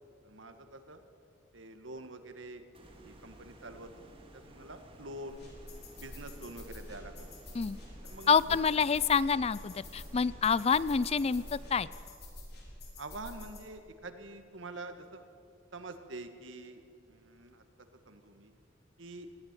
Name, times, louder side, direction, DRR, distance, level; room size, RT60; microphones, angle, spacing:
voice 1, 0.2-1.0 1.5-2.6 3.0-3.9 4.3-5.4 6.0-7.3 8.0-8.6 13.0-15.3 15.7-17.6 18.1-18.5 19.0-19.3, right 2 dB, 85° right, 8 dB, 1.8 m, -46 dB
sound 1, 2.7-11.9, right 1 dB, 30° right, 2.9 m, -55 dB
sound 2, 5.3-13.6, left 1 dB, 55° left, 4.6 m, -48 dB
voice 2, 8.3-11.9, left 6 dB, 30° left, 19 dB, 0.4 m, -27 dB
20.0 x 15.5 x 9.1 m, 2.6 s
head